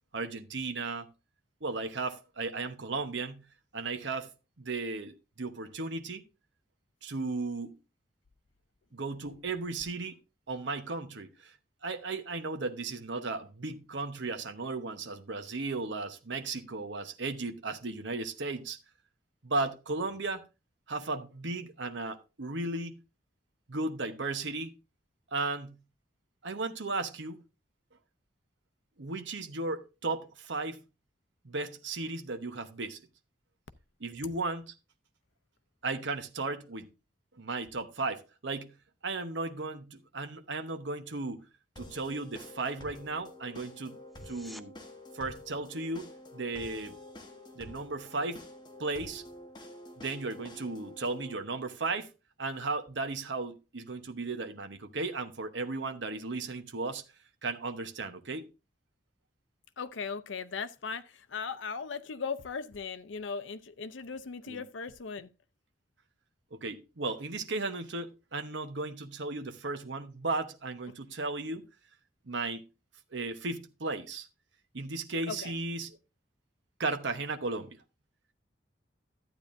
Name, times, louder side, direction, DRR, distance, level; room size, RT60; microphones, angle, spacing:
voice 1, 0.1-1.1 1.6-3.5 3.7-4.3 4.6-6.2 7.0-7.8 8.9-10.2 10.5-11.5 11.8-18.8 19.4-20.4 20.9-23.0 23.7-24.7 25.3-25.8 26.4-27.4 29.0-30.8 31.4-33.0 34.0-34.7 35.8-36.9 37.4-38.7 39.0-41.4 41.8-44.0 44.3-44.8 45.1-47.0 47.5-48.4 48.8-49.2 50.0-52.1 52.4-57.0 57.4-58.5 64.5-64.6 66.5-71.7 72.3-72.6 73.1-74.3 74.7-75.9 76.8-77.8, right 3 dB, 75° right, 1.0 m, -35 dB
sound 1, 41.8-51.4, left 1 dB, 25° left, 1.3 m, -48 dB
sound 2, 44.1-44.7 56.0-56.1, equal, ahead, 0.5 m, -50 dB
voice 2, 59.8-65.3 75.3-75.5, left 5 dB, 85° left, 0.6 m, -38 dB
12.0 x 9.0 x 2.6 m
head